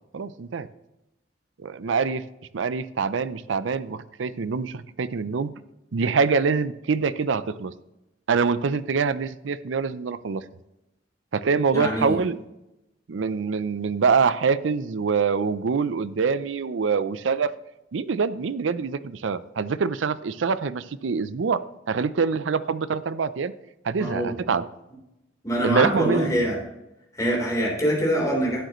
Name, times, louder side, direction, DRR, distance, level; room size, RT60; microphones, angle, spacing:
voice 1, 0.1-0.7 1.6-2.2 2.5-5.5 5.9-7.7 8.3-10.4 11.3-12.4 13.1-17.5 17.9-23.5 23.8-24.7 25.6-26.4, right 5 dB, 75° right, 14 dB, 0.5 m, -25 dB
voice 2, 11.7-12.2 24.0-24.3 25.4-26.6 27.2-28.6, equal, 20° left, -3 dB, 3.6 m, -24 dB
12.0 x 9.1 x 3.1 m, 0.93 s
head